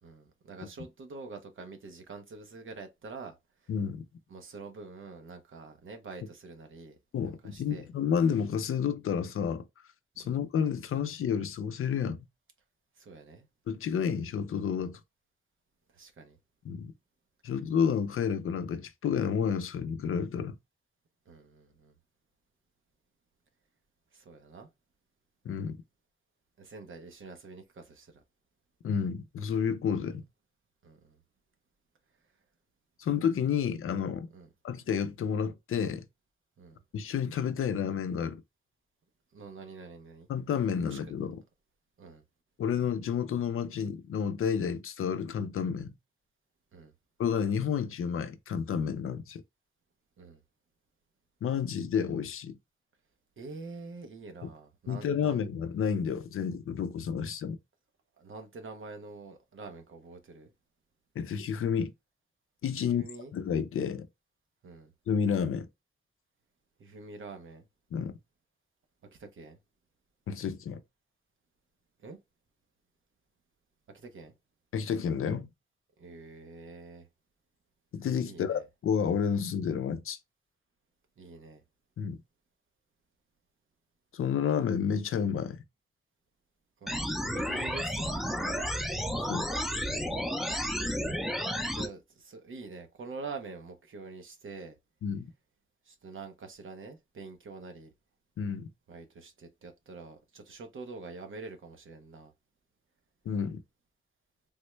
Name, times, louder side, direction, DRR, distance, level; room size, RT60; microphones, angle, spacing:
voice 1, 0.0-3.4 4.3-7.0 7.2-7.9 10.2-10.3 13.0-13.5 15.9-16.4 21.3-21.9 24.1-24.7 26.6-28.1 30.8-31.2 34.3-34.5 36.6-36.8 39.3-40.3 40.8-41.0 42.0-42.2 46.7-46.9 50.2-50.4 53.4-55.4 58.2-60.5 62.8-63.3 64.6-64.9 66.8-67.7 69.1-69.6 72.0-72.2 73.9-74.4 76.0-77.1 78.3-78.6 81.2-81.6 86.8-88.7 90.3-94.8 95.9-97.9 98.9-102.3, right 3 dB, 70° right, 0.8 m, -46 dB
voice 2, 3.7-4.0 7.1-9.6 10.2-12.3 13.7-15.0 16.6-16.9 17.4-20.6 25.4-25.8 28.8-30.2 33.0-34.3 34.6-36.1 36.9-38.4 40.3-41.4 42.6-45.9 47.2-49.4 51.4-52.6 54.4-54.5 54.9-57.6 61.2-61.9 62.6-63.0 63.3-64.1 65.1-65.7 67.9-68.1 70.3-70.8 74.7-75.5 77.9-80.2 82.0-82.2 84.1-85.6 89.2-89.5 95.0-95.3 98.4-98.7 103.3-103.6, left 7 dB, 80° left, 0.5 m, -30 dB
sound 1, 86.9-91.9, equal, ahead, 0.6 m, -32 dB
3.5 x 2.2 x 3.0 m
wide cardioid pair, 95°, 21 cm